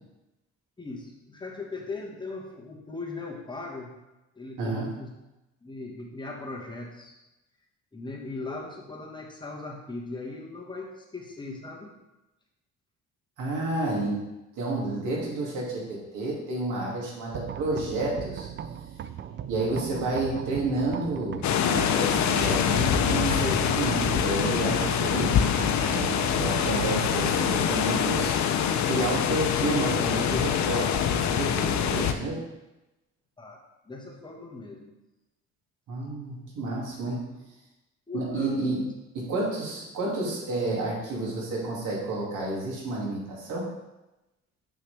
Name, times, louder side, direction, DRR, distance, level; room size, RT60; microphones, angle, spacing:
voice 1, 0.8-3.9 4.3-5.1 5.6-7.1 7.9-12.0 33.4-33.6 33.8-35.0 36.6-36.7 38.1-38.9, left 3 dB, 15° left, -2 dB, 1.6 m, -39 dB
voice 2, 13.4-14.2 14.6-18.5 19.5-25.4 25.9-28.3 28.8-32.4 35.9-37.3 38.1-38.8 39.1-43.7, right 2 dB, 80° right, -4 dB, 2.4 m, -30 dB
sound 1, 17.3-31.2, right 9 dB, 40° right, 0.4 m, -38 dB
sound 2, 21.4-32.1, left 8 dB, 65° left, 0.6 m, -25 dB
7.0 x 5.7 x 3.4 m, 0.98 s
cardioid pair, 90°, 30 cm